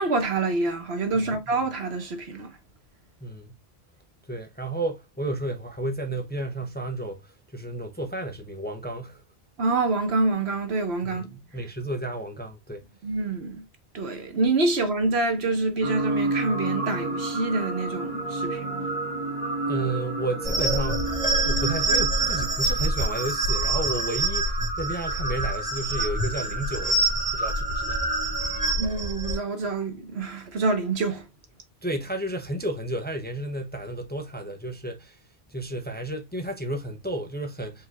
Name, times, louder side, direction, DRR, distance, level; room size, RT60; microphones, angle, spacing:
voice 1, 0.0-2.5 9.6-11.3 13.0-13.6 13.9-18.9 28.7-31.3, right 3 dB, 85° right, 1.4 m, -26 dB
voice 2, 3.2-3.6 4.3-9.2 11.0-12.8 19.7-21.2 21.4-28.0 31.8-35.2 35.5-37.9, right 1 dB, 10° left, 0.6 m, -32 dB
sound 1, 15.8-28.7, right 2 dB, 70° left, 2.1 m, -31 dB
sound 2, 20.4-29.4, right 2 dB, 30° right, 1.0 m, -26 dB
4.7 x 3.8 x 2.3 m
omnidirectional pair, 1.1 m